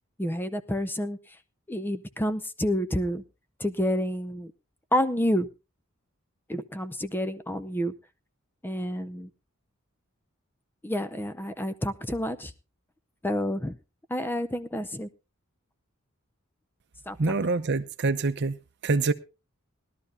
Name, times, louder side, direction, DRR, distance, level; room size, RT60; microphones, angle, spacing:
voice 1, 0.2-1.4 1.7-3.2 3.6-4.5 4.9-5.5 6.5-7.9 8.6-9.3 10.8-12.5 13.2-13.8 14.1-15.1 17.1-17.4, equal, 10° left, 0.5 m, -29 dB
voice 2, 17.2-19.1, right 3 dB, 55° right, 0.7 m, -26 dB
20.0 x 12.0 x 2.6 m
head